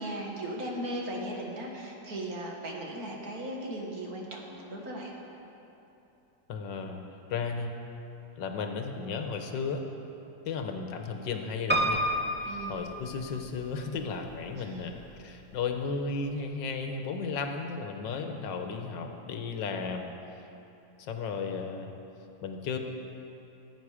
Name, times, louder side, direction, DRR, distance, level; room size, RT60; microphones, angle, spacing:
voice 1, 0.0-5.2 12.5-12.9 14.6-14.8, right 1 dB, 55° right, -1 dB, 2.0 m, -37 dB
voice 2, 6.5-7.0 7.3-7.7 8.4-9.8 10.5-12.0 12.4-20.1 21.0-21.9 22.4-22.8, left 5 dB, 80° left, 5 dB, 1.6 m, -34 dB
Piano, 11.7-13.7 14.3-15.0 15.3-15.4 15.6-15.7, right 1 dB, 20° right, 0.3 m, -30 dB
16.0 x 8.8 x 4.9 m, 2.9 s
omnidirectional pair, 2.0 m